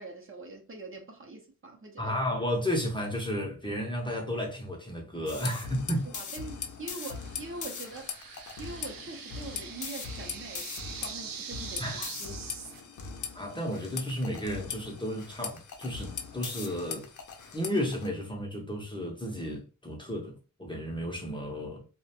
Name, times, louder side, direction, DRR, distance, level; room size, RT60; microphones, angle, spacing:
voice 1, 0.0-2.2 6.0-8.1 8.6-11.9 12.2-12.5, right 2 dB, 40° right, 0.6 m, -43 dB
voice 2, 2.0-6.1 11.8-12.1 13.3-17.1 17.5-21.8, equal, 15° left, 0.7 m, -33 dB
sound 1, 5.3-18.1, left 6 dB, 60° left, 0.6 m, -40 dB
sound 2, 6.9-12.8, right 7 dB, 80° right, 0.5 m, -43 dB
2.4 x 2.1 x 2.7 m
wide cardioid pair, 95°, 34 cm